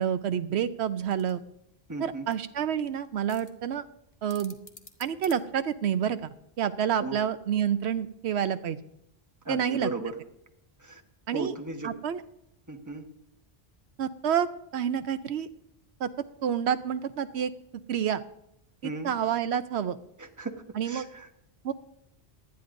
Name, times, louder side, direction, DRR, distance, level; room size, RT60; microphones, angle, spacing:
voice 1, 0.0-1.4 2.0-3.8 4.2-4.6 5.0-8.8 9.5-9.9 11.3-11.5 11.8-12.2 14.0-14.5 14.7-15.5 16.0-16.1 16.4-17.5 17.9-18.2 18.8-20.0 20.7-21.1 21.6-21.7, right 9 dB, 80° right, 11 dB, 0.9 m, -28 dB
sound 1, 1.1-6.1, left 2 dB, 30° left, 1.3 m, -53 dB
voice 2, 1.9-2.3 7.0-7.2 9.4-10.2 10.8-11.0 11.3-11.9 12.7-13.0 18.8-19.1 20.2-20.5 20.8-21.3, right 3 dB, 15° right, 4 dB, 1.2 m, -35 dB
19.0 x 12.5 x 2.6 m, 0.80 s
omnidirectional pair, 1.1 m